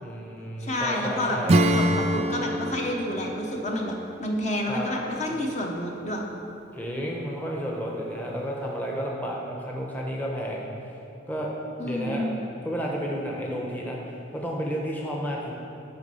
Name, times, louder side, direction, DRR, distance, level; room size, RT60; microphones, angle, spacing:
voice 1, 0.0-1.5 4.7-4.9 6.7-10.6 11.3-11.5 11.8-12.2 12.6-15.5, equal, 10° left, -2 dB, 0.8 m, -31 dB
voice 2, 0.6-3.9 4.2-6.2 11.8-12.4, left 1 dB, 35° left, 0 dB, 0.8 m, -29 dB
Acoustic guitar / Strum, 1.5-5.8, right 1 dB, 35° right, 0.4 m, -27 dB
8.1 x 5.4 x 5.5 m, 2.8 s
head